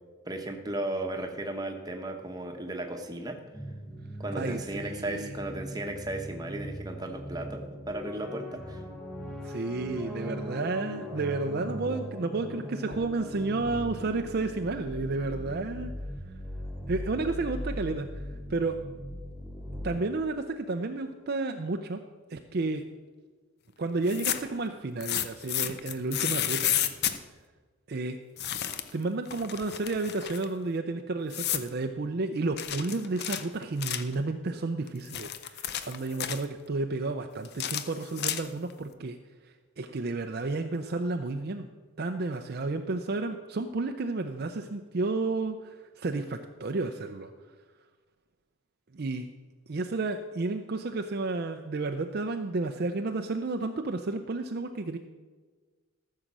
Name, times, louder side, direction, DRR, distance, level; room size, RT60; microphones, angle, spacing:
voice 1, 0.2-3.4 4.2-8.8, right 1 dB, 15° right, 4 dB, 1.0 m, -35 dB
sound 1, 3.5-20.0, equal, 5° left, 1.6 m, -39 dB
voice 2, 4.3-5.3 9.4-15.9 16.9-18.1 18.5-18.8 19.8-22.0 22.3-22.8 23.8-26.8 27.9-28.2 28.9-39.2 39.8-41.7 42.0-47.3 48.9-49.3 49.7-55.0, right 3 dB, 45° right, 5 dB, 0.5 m, -31 dB
sound 2, 24.0-24.6 25.0-27.2 28.4-29.0 29.3-30.5 31.3-31.7 32.6-34.1 34.9-36.4 37.4-38.7, left 11 dB, 45° left, 0.6 m, -31 dB
14.0 x 6.5 x 6.0 m, 1.4 s
head